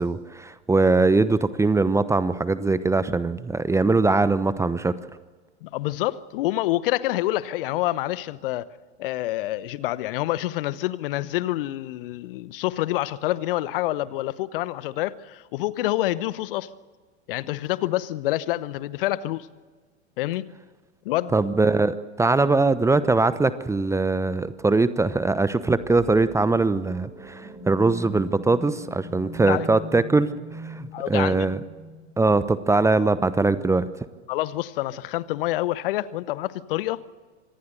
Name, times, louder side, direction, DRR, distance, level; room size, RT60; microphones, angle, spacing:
voice 1, 0.0-5.0 21.3-31.6 32.2-33.9, right 3 dB, 10° right, 0.9 m, -21 dB
voice 2, 5.6-8.7 9.0-16.7 17.3-19.5 20.2-20.5 21.0-21.4 29.5-29.7 30.9-31.5 34.3-37.0, left 16 dB, 55° left, 1.0 m, -27 dB
sound 1, 25.6-33.3, right 2 dB, 25° right, 7.3 m, -41 dB
25.5 x 19.0 x 6.5 m
figure-of-eight pair, 90°, 34 cm